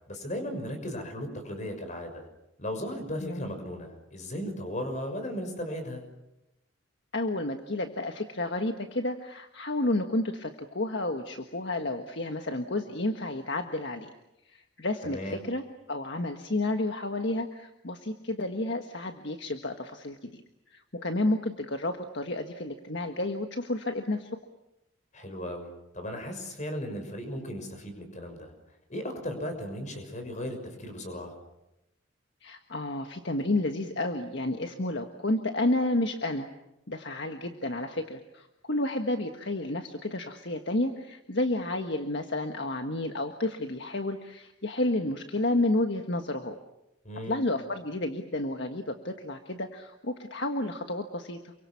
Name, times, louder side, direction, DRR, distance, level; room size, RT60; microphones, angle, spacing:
voice 1, 0.1-2.3 2.6-6.0 15.0-15.4 25.1-28.5 28.9-31.3 47.0-47.4, equal, 35° left, 6 dB, 6.2 m, -36 dB
voice 2, 3.2-3.6 7.1-14.1 14.4-20.4 20.7-24.3 32.4-36.5 36.9-46.6 47.2-51.5, left 2 dB, 60° left, 5 dB, 1.6 m, -31 dB
28.5 x 24.0 x 7.1 m, 0.90 s
head